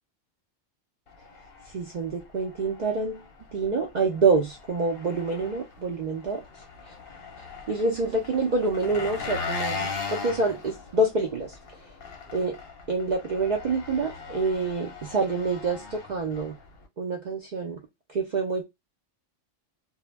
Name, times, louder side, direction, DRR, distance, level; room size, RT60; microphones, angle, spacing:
Engine, 1.1-16.9, left 4 dB, 55° left, 0.7 m, -39 dB
voice 1, 1.7-3.2 3.5-6.4 7.7-11.6 12.3-12.6 12.9-16.6 17.0-17.8 18.1-18.6, right 3 dB, 90° right, 0.4 m, -27 dB
2.1 x 2.1 x 3.1 m
omnidirectional pair, 1.3 m